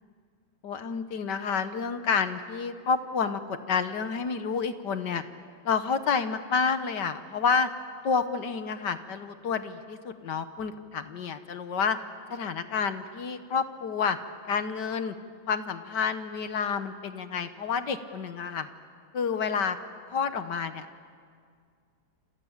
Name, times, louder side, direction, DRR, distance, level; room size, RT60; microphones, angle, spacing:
voice 1, 0.6-5.2 5.6-7.7 8.0-12.0 12.3-14.2 14.5-15.1 15.5-18.7 19.1-19.8 20.1-20.9, left 6 dB, 60° left, 10 dB, 1.7 m, -29 dB
28.5 x 28.0 x 7.4 m, 2.2 s
omnidirectional pair, 2.2 m